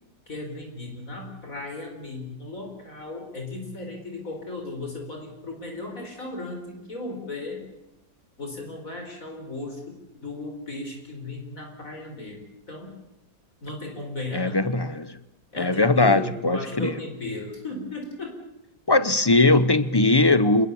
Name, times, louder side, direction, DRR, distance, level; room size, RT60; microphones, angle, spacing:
voice 1, 0.3-7.6 8.4-12.9 13.6-14.6 15.5-18.4, left 2 dB, 50° left, 3 dB, 5.1 m, -36 dB
voice 2, 14.3-15.2 15.6-16.9 18.9-20.7, left 2 dB, 30° left, 13 dB, 0.5 m, -20 dB
27.0 x 21.5 x 7.1 m, 0.89 s
omnidirectional pair, 1.8 m